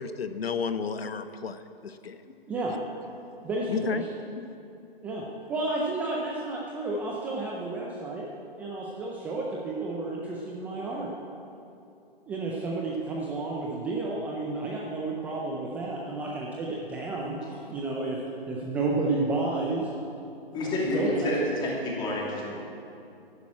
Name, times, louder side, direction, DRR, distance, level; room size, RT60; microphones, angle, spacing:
voice 1, 0.0-2.4 3.7-4.0 4.3-4.6, left 5 dB, 80° left, 10 dB, 1.1 m, -32 dB
voice 2, 3.4-4.1 5.0-8.2 8.6-11.1 12.3-18.2 18.5-19.9 20.6-21.3, right 2 dB, 5° right, -3 dB, 0.5 m, -31 dB
voice 3, 20.5-22.6, left 1 dB, 15° left, -4 dB, 2.8 m, -29 dB
11.5 x 11.0 x 8.5 m, 2.7 s
hypercardioid pair, 150°, 30 cm